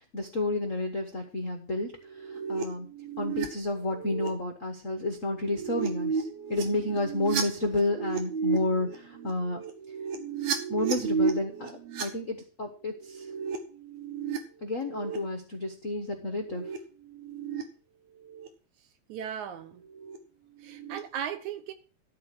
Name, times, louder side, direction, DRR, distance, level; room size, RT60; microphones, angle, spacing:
voice 1, 0.1-1.9 2.2-2.9 3.2-9.6 10.7-13.3 14.6-16.6, left 2 dB, 80° left, 0.7 m, -31 dB
sound 1, 1.9-3.5 3.8-4.3 5.3-12.1 12.9-14.4 14.7-15.2 16.2-16.8 17.0-17.6 18.3-18.5 19.8-20.2 20.6-21.0, right 6 dB, 65° right, 2.3 m, -33 dB
voice 2, 19.1-19.8 20.6-21.7, right 9 dB, 80° right, 2.4 m, -36 dB
12.5 x 4.5 x 7.3 m
omnidirectional pair, 3.4 m